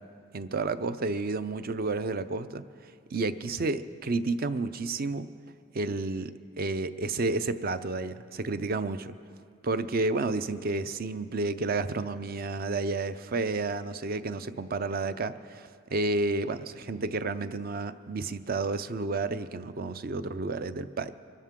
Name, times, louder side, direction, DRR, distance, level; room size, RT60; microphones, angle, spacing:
voice 1, 0.3-2.7 3.1-5.3 5.7-9.2 9.6-21.1, right 3 dB, 50° right, 12 dB, 0.6 m, -31 dB
24.5 x 13.0 x 3.7 m, 2.2 s
head